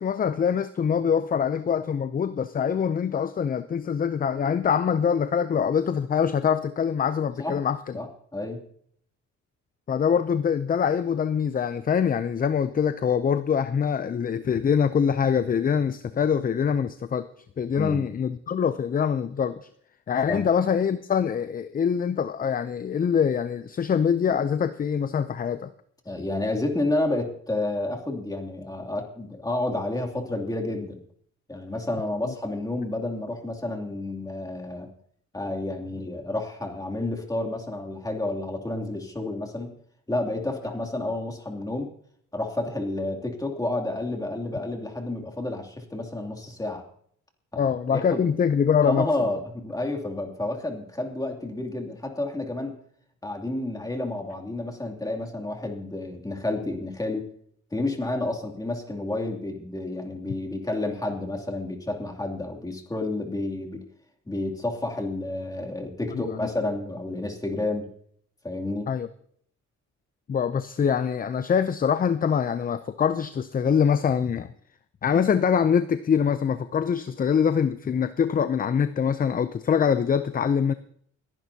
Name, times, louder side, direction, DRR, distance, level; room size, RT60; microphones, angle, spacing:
voice 1, 0.0-8.0 9.9-17.3 17.6-19.7 20.1-25.7 32.2-32.3 47.6-49.1 66.1-66.5 68.9-69.1 70.3-74.5 75.0-80.7, left 7 dB, 30° left, 0.5 m, -24 dB
voice 2, 26.0-31.0 31.5-34.9 35.3-39.7 40.1-41.9 42.3-46.8 47.5-47.6 47.9-48.3 48.8-52.7 53.2-57.2 57.7-63.8 64.3-67.9 68.4-68.9, left 2 dB, 10° left, 2.7 m, -30 dB
29.5 x 10.5 x 2.8 m
cardioid pair, 90°, 30 cm